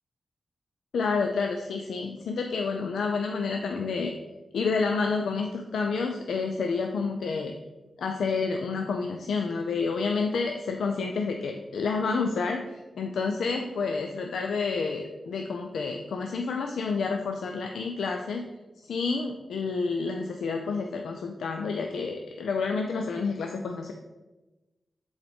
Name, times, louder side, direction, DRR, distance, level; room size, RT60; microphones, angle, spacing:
voice 1, 0.9-4.1 4.5-7.5 8.0-18.5 18.8-23.9, left 4 dB, 90° left, 4 dB, 0.4 m, -29 dB
7.6 x 4.0 x 3.5 m, 1.1 s
cardioid pair, 50°, 0 cm